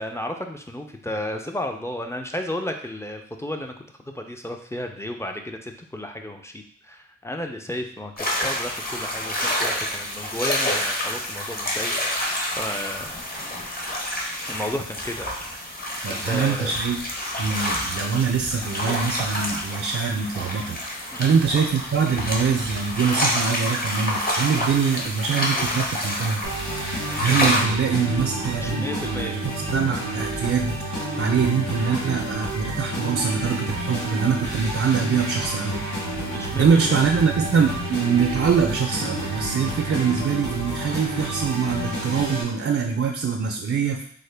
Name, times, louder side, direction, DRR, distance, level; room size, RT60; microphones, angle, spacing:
voice 1, 0.0-3.7 4.1-13.2 14.5-15.3 16.1-16.7 21.1-21.4 28.5-29.4 36.2-37.1, left 1 dB, 10° left, 4 dB, 0.4 m, -33 dB
sound 1, 8.2-27.6, left 1 dB, 30° left, 0.9 m, -28 dB
voice 2, 16.0-17.0 17.4-26.6 27.1-29.4 29.7-35.8 36.6-44.0, right 6 dB, 50° right, 1 dB, 0.5 m, -23 dB
sound 2, 26.4-42.4, right 1 dB, 75° left, 1.2 m, -30 dB
3.7 x 2.1 x 3.3 m, 0.63 s
cardioid pair, 50°, 29 cm